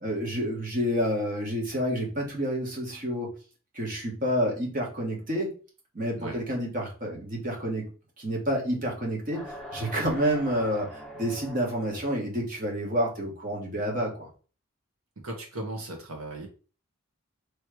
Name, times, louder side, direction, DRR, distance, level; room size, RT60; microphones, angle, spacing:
voice 1, 0.0-3.3 3.7-5.5 5.9-7.8 8.2-9.4 9.7-14.3, equal, 40° right, -1 dB, 1.4 m, -29 dB
sound 1, 9.3-12.2, equal, 5° right, 1.1 m, -42 dB
voice 2, 15.2-16.5, right 1 dB, 80° right, 2 dB, 1.4 m, -37 dB
3.2 x 3.1 x 4.7 m, 0.36 s
head